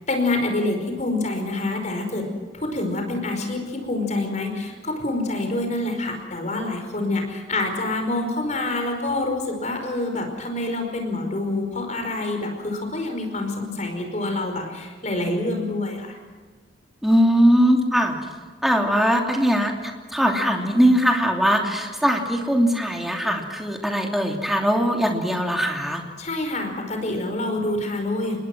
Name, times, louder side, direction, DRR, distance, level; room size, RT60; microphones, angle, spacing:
voice 1, 0.1-2.3 2.5-16.2 26.2-28.4, left 2 dB, 35° left, 4 dB, 5.1 m, -26 dB
voice 2, 17.0-18.2 18.6-26.0, equal, ahead, 2 dB, 2.9 m, -20 dB
27.5 x 21.0 x 6.2 m, 1.5 s
head